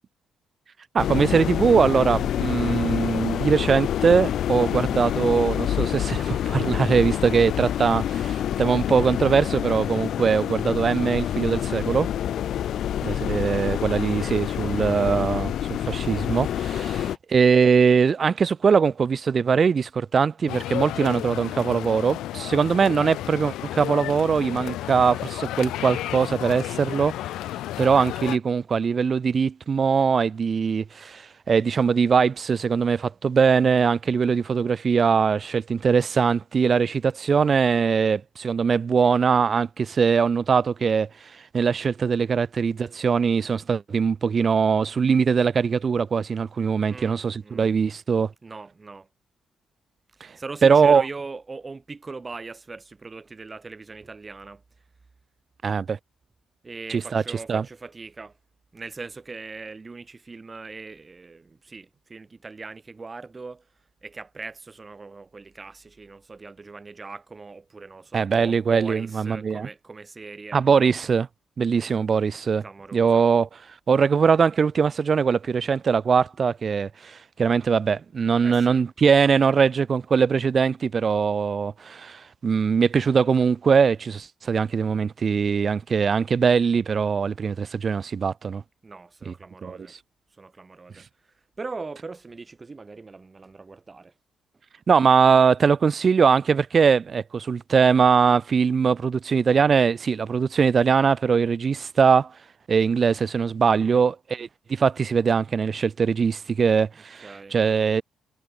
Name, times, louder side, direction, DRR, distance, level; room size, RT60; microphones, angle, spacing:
voice 1, 0.9-12.1 13.0-27.1 27.8-41.1 41.5-48.3 50.2-50.3 50.6-51.0 55.6-56.0 56.9-57.2 57.5-57.6 68.1-69.7 70.5-71.3 71.6-72.6 72.9-73.5 73.9-88.6 89.2-89.3 89.6-89.8 94.9-102.3 102.7-108.0, right 6 dB, 45° right, 3.4 m, -21 dB
sound 1, 1.0-17.2, left 10 dB, 70° left, 1.5 m, -27 dB
voice 2, 13.0-13.3 15.2-15.3 16.7-17.1 46.9-47.7 48.4-49.1 50.1-54.6 56.6-58.3 58.7-63.7 64.0-70.6 72.6-73.3 78.4-78.8 88.8-89.9 90.4-91.1 91.6-94.1 103.8-104.0 107.2-107.6, right 4 dB, 25° right, 5.0 m, -40 dB
sound 2, 20.5-28.4, left 14 dB, 85° left, 6.0 m, -32 dB
cardioid pair, 90°, 0 cm